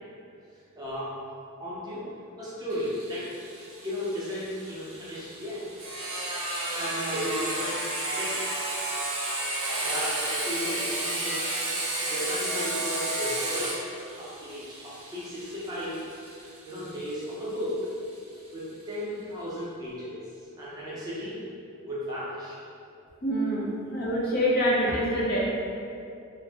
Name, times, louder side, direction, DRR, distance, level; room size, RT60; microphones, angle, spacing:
voice 1, 0.8-1.1 1.6-2.0 2.4-3.3 3.8-5.6 6.7-8.3 9.8-11.5 12.1-13.8 14.2-16.0 16.7-17.8 18.5-20.1 20.6-21.3 21.8-22.6, equal, 15° right, -9 dB, 0.5 m, -35 dB
Sawing, 2.7-18.1, right 2 dB, 65° right, 0.8 m, -32 dB
voice 2, 23.2-25.4, equal, 45° left, -6 dB, 0.5 m, -26 dB
2.5 x 2.0 x 3.3 m, 2.5 s
head